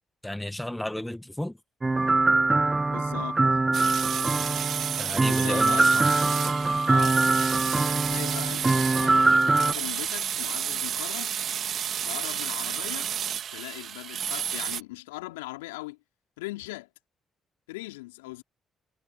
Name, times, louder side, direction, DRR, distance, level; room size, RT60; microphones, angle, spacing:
voice 1, 0.2-1.6 5.0-6.0, left 1 dB, 10° left, 1.7 m, -33 dB
sound 1, 1.8-9.7, right 3 dB, 25° right, 0.4 m, -23 dB
voice 2, 2.9-3.4 5.3-5.9 6.9-7.2 7.9-11.4 12.0-13.1 13.5-16.0 16.4-16.9 17.7-18.4, left 21 dB, 80° left, 4.3 m, -39 dB
sound 2, 3.7-14.8, right 9 dB, 55° right, 2.5 m, -31 dB
hypercardioid pair, 45°, 0 cm